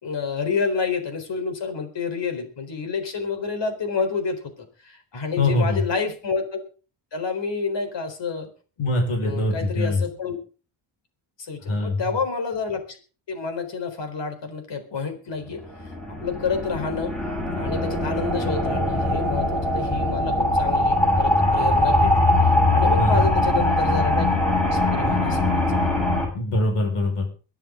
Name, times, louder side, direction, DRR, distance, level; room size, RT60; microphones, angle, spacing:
voice 1, 0.0-6.5 7.1-8.5 9.2-10.4 11.4-13.0 13.3-15.6 16.1-17.1 17.6-24.3 24.7-25.6, left 5 dB, 55° left, 7 dB, 4.2 m, -29 dB
voice 2, 5.4-5.8 8.8-10.0 11.7-12.0 23.0-23.2 26.3-27.3, left 2 dB, 85° left, 2 dB, 5.3 m, -23 dB
abyss pad, 15.6-26.2, left 1 dB, ahead, 7.1 m, -21 dB
23.0 x 10.5 x 3.8 m, 0.36 s
wide cardioid pair, 160°, 49 cm